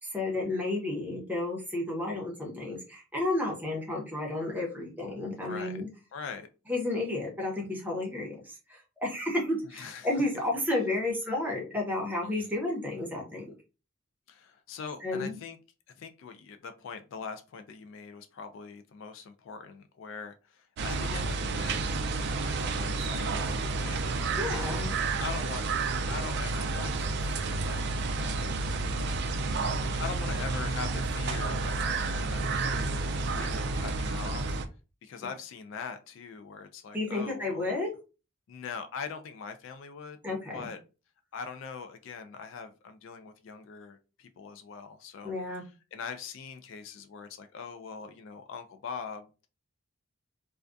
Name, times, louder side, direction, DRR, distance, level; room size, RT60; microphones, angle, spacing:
voice 1, 0.0-5.9 6.7-13.4 15.0-15.4 24.3-24.9 36.9-37.9 40.2-40.7 45.2-45.6, left 2 dB, 10° right, 0.7 m, -32 dB
voice 2, 5.4-5.8 6.1-6.5 9.7-10.1 12.3-12.5 14.3-15.6 16.0-24.7 25.2-25.7 26.1-27.9 28.2-28.7 29.2-29.3 30.0-34.6 35.0-37.6 38.5-40.8 41.3-45.3 45.9-49.5, left 5 dB, 65° left, 0.3 m, -42 dB
sound 1, 20.8-34.7, right 3 dB, 55° right, 0.3 m, -30 dB
2.3 x 2.2 x 2.5 m
head